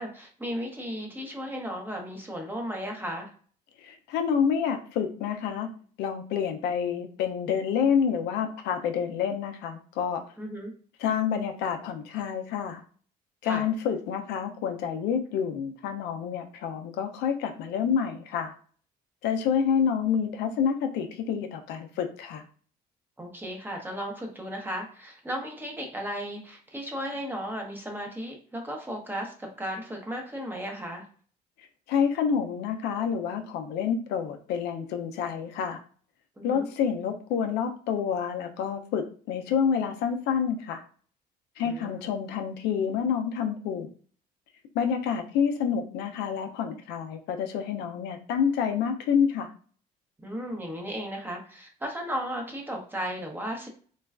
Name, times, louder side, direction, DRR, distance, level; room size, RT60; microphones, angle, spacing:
voice 1, 0.0-3.3 10.4-10.7 13.4-13.6 23.2-31.1 36.4-36.7 41.6-42.1 50.2-53.7, equal, 10° right, 1 dB, 0.7 m, -35 dB
voice 2, 3.8-5.7 6.0-10.2 11.0-12.8 13.4-18.5 19.2-22.4 31.9-35.8 36.4-40.8 41.6-43.9 44.7-49.5, left 7 dB, 85° left, 6 dB, 0.4 m, -28 dB
3.1 x 2.2 x 2.3 m, 0.44 s
cardioid pair, 110°, 17 cm